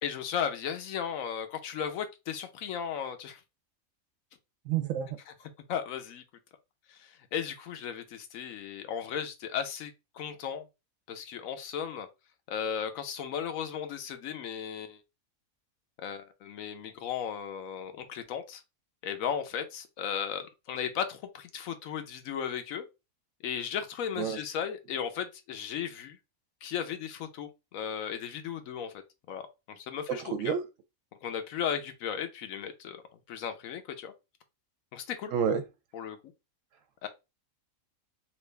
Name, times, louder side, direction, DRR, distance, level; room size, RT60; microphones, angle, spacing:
voice 1, 0.0-3.4 5.7-6.2 6.9-10.7 11.1-12.1 12.5-15.0 16.0-18.6 19.0-22.9 23.4-26.2 26.6-28.9 29.3-30.5 31.2-33.0 33.3-34.1 34.9-35.3 35.9-36.2 37.0-37.1, left 8 dB, 75° left, 1.0 m, -35 dB
voice 2, 4.6-5.2 24.2-24.4 30.1-30.7 35.3-35.6, right 7 dB, 70° right, 0.9 m, -29 dB
3.1 x 2.4 x 3.3 m
omnidirectional pair, 1.5 m